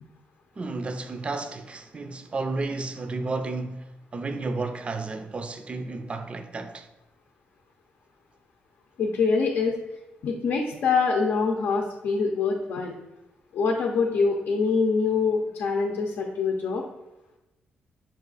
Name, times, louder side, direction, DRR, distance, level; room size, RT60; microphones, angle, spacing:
voice 1, 0.6-3.9 4.1-6.9, right 3 dB, 30° right, 0.4 m, -32 dB
voice 2, 9.0-9.7 10.2-12.9 13.5-16.8, left 4 dB, 75° left, 0.6 m, -24 dB
5.6 x 2.4 x 3.9 m
cardioid pair, 110°, 4 cm